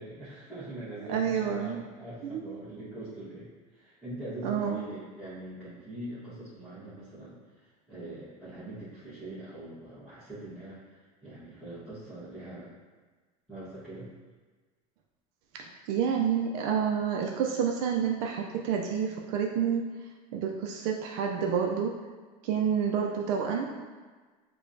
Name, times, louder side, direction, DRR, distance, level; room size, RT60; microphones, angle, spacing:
voice 1, 0.0-12.7 13.5-14.1, right 1 dB, ahead, -14 dB, 1.3 m, -43 dB
voice 2, 1.1-1.8 2.3-2.4 4.4-4.8 15.5-19.8 20.3-21.9 22.4-23.8, right 7 dB, 70° right, 1 dB, 0.4 m, -29 dB
4.9 x 2.3 x 2.6 m, 1.4 s
supercardioid pair, 100°, 18 cm